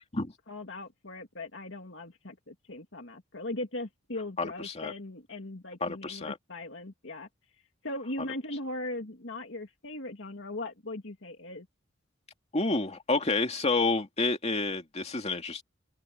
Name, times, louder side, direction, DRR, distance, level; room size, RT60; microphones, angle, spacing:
voice 1, 0.5-7.3 7.8-11.7, left 2 dB, 70° left, 2.4 m, -39 dB
voice 2, 4.4-4.9 5.8-6.4 12.5-15.6, left 3 dB, 35° left, 2.5 m, -29 dB
head